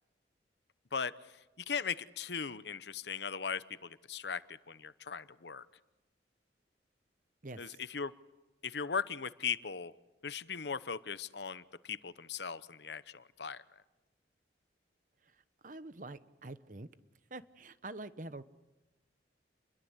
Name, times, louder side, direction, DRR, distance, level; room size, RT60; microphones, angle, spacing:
voice 1, 0.9-5.7 7.6-8.1 8.6-9.9 10.2-13.6, left 6 dB, 70° left, 15 dB, 0.9 m, -38 dB
voice 2, 15.6-16.9 17.3-18.4, right 2 dB, 45° right, 13 dB, 1.0 m, -45 dB
29.5 x 22.0 x 8.1 m, 1.1 s
head